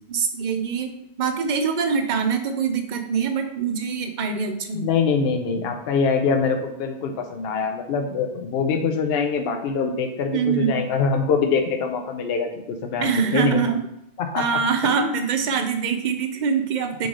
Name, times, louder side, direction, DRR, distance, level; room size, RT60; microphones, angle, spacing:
voice 1, 0.1-4.9 10.3-10.8 13.0-13.8 14.4-17.1, right 6 dB, 55° right, 6 dB, 0.6 m, -24 dB
voice 2, 4.7-12.5 12.8-13.6 14.2-14.4 15.0-15.2, left 5 dB, 70° left, 4 dB, 0.8 m, -24 dB
3.8 x 3.1 x 3.7 m, 0.80 s
omnidirectional pair, 1.1 m